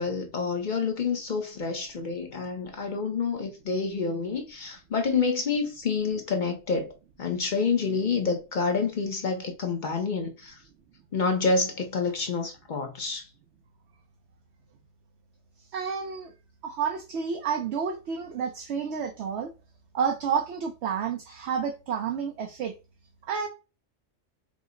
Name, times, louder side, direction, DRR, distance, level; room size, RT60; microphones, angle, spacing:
voice 1, 0.0-6.9 7.2-10.6 11.1-13.3, left 4 dB, 45° left, 0.7 m, -28 dB
voice 2, 15.7-16.3 16.6-19.5 19.9-22.7 23.3-23.5, right 6 dB, 70° right, 0.8 m, -30 dB
4.9 x 2.0 x 3.7 m
omnidirectional pair, 1.3 m